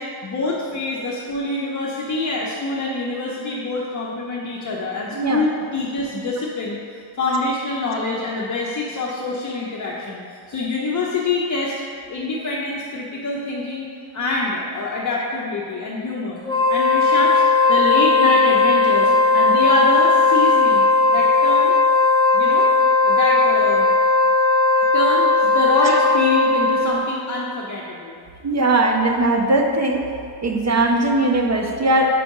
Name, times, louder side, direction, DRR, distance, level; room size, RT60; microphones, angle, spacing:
voice 1, 0.0-11.7 12.1-13.9 14.1-16.4 16.7-17.4 17.7-21.7 22.3-22.7 23.0-23.9 24.9-28.2, left 2 dB, 45° left, -4 dB, 0.6 m, -25 dB
Wind instrument woodwind instrument, 16.4-27.0, left 3 dB, 10° left, 1.1 m, -16 dB
voice 2, 28.4-30.0 30.4-32.1, right 2 dB, 40° right, 2 dB, 0.5 m, -19 dB
4.8 x 4.6 x 5.3 m, 2.3 s
wide cardioid pair, 180°, 42 cm